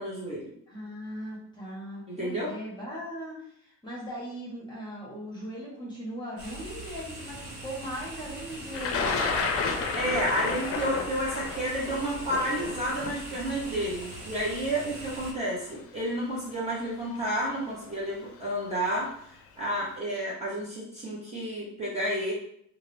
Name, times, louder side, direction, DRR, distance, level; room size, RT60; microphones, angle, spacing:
voice 1, 0.0-0.5 2.1-2.5 9.9-22.3, right 1 dB, 20° right, -7 dB, 1.4 m, -31 dB
voice 2, 0.7-9.4, equal, 15° left, -6 dB, 1.3 m, -39 dB
sound 1, 6.4-15.3, right 1 dB, 80° right, 1.5 m, -42 dB
Thunder, 8.7-14.7 15.7-15.8 16.9-17.2 17.5-17.9, left 4 dB, 45° left, 0.6 m, -31 dB
2.8 x 2.5 x 3.3 m, 0.69 s
cardioid pair, 105°, 31 cm